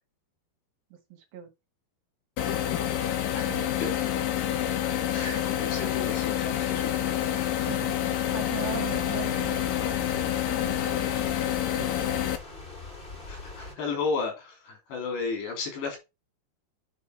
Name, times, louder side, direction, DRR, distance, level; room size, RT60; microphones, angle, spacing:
voice 1, 1.1-1.5 3.5-3.9 7.6-8.0 8.3-10.1 10.6-10.8 11.8-11.9, right 13 dB, 65° right, 2.8 m, -39 dB
sound 1, 2.4-12.4, left 11 dB, 70° left, 2.3 m, -28 dB
voice 2, 5.1-7.0 13.3-16.0, left 4 dB, 85° left, 5.3 m, -33 dB
sound 2, 8.5-13.7, left 3 dB, 20° left, 1.4 m, -43 dB
9.5 x 4.2 x 4.7 m
omnidirectional pair, 4.8 m